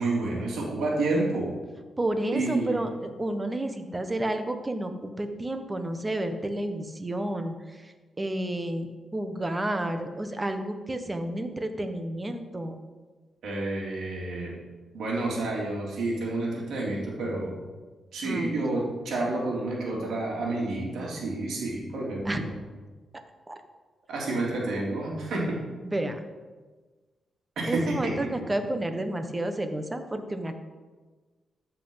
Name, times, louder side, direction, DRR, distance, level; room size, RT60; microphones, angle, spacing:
voice 1, 0.0-1.5 2.3-2.8 13.4-14.5 14.9-17.6 18.1-22.5 24.1-25.6 27.6-28.1, right 2 dB, 80° right, -3 dB, 3.4 m, -29 dB
voice 2, 2.0-12.7 18.2-18.6 22.2-22.4 23.5-23.6 25.8-26.2 27.7-30.5, right 1 dB, 20° right, 7 dB, 1.2 m, -31 dB
13.5 x 5.8 x 5.7 m, 1.3 s
cardioid pair, 85°, 0 cm